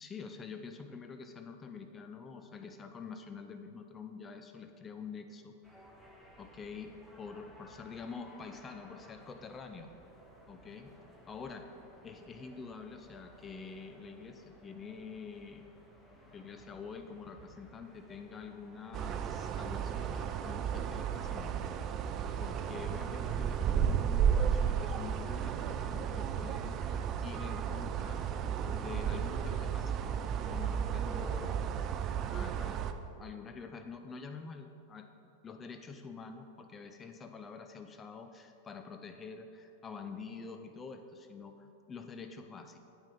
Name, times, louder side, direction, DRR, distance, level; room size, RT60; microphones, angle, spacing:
voice 1, 0.0-5.8 6.4-9.9 10.5-10.9 11.3-11.7 12.0-15.6 16.3-21.7 22.4-28.3 28.7-31.6 32.3-32.8 33.2-42.8, left 5 dB, 25° left, 7 dB, 0.6 m, -47 dB
sound 1, 5.6-23.8, equal, 5° left, 1.4 m, -58 dB
sound 2, 18.9-32.9, right 8 dB, 40° right, 0.5 m, -33 dB
9.1 x 5.4 x 5.2 m, 2.7 s
hypercardioid pair, 95°, 0 cm